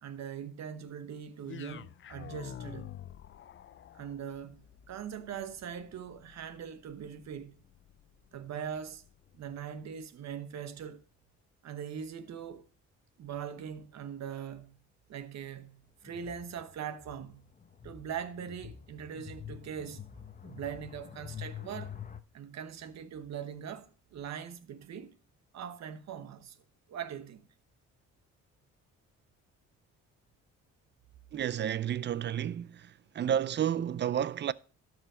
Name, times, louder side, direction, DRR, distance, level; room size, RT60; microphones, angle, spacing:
voice 1, 0.0-3.0 3.9-7.6 8.3-9.0 9.3-11.0 11.6-12.6 13.2-17.5 17.8-20.0 20.4-21.9 22.3-25.1 25.5-26.6 26.9-27.5, right 8 dB, 60° right, 1.1 m, -41 dB
sound 1, 1.4-9.6, left 10 dB, 40° left, 0.5 m, -50 dB
sound 2, 16.0-22.2, left 8 dB, 25° left, 0.9 m, -47 dB
voice 2, 31.3-34.5, right 9 dB, 35° right, 0.4 m, -31 dB
12.0 x 5.0 x 4.9 m
cardioid pair, 90°, 30 cm